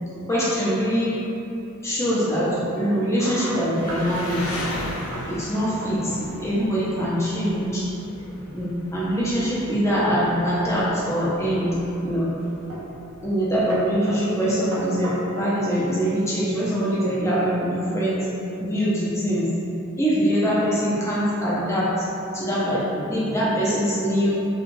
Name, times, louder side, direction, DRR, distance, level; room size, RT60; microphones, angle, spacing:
voice 1, 0.3-1.2 1.8-4.6 5.3-7.9 8.5-12.3 13.2-18.3 18.6-19.5 20.0-22.1 22.3-24.3, equal, 15° left, -8 dB, 0.5 m, -23 dB
sound 1, 3.2-4.2 4.6-4.8 5.1-5.3 5.5-6.2 6.5-6.9 10.2-10.9 11.5-11.9 12.7-12.9 13.2-13.4 13.7-15.5, right 1 dB, 80° right, 0.6 m, -37 dB
Engine, 3.8-14.0, left 1 dB, 75° left, 0.5 m, -38 dB
3.1 x 2.3 x 2.5 m, 2.8 s
head